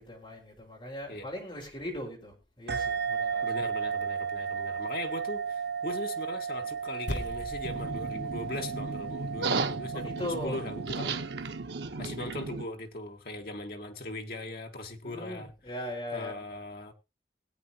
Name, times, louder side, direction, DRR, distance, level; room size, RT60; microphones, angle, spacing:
voice 1, 0.0-3.5 9.9-10.6 15.0-16.3, left 1 dB, 30° left, 4.7 m, -39 dB
sound 1, 2.7-11.7, right 6 dB, 60° right, 0.6 m, -34 dB
voice 2, 3.4-11.2 12.0-15.8 16.1-16.9, left 2 dB, 55° left, 1.7 m, -39 dB
sound 2, 7.1-11.6, equal, 85° left, 1.9 m, -42 dB
sound 3, 7.6-12.7, right 3 dB, 80° right, 0.9 m, -35 dB
21.0 x 8.6 x 2.9 m
head